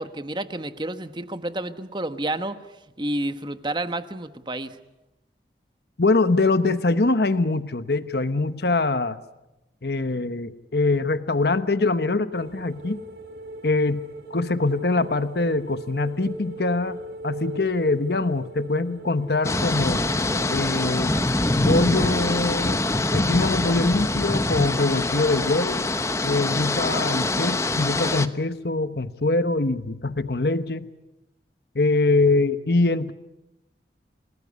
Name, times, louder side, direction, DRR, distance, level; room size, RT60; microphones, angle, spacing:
voice 1, 0.0-2.6 3.0-4.8, right 1 dB, 25° right, 10 dB, 1.2 m, -30 dB
voice 2, 6.0-9.2 9.8-13.0 13.6-17.0 17.2-20.0 20.5-21.2 21.6-22.8 23.1-25.9 26.2-30.9 31.7-33.1, left 3 dB, 60° left, 12 dB, 1.0 m, -23 dB
sound 1, 12.3-25.8 26.0-26.3, right 2 dB, 65° right, 3.0 m, -40 dB
sound 2, 19.4-28.3, left 2 dB, 15° left, 0.9 m, -24 dB
29.0 x 19.0 x 9.7 m, 0.97 s
head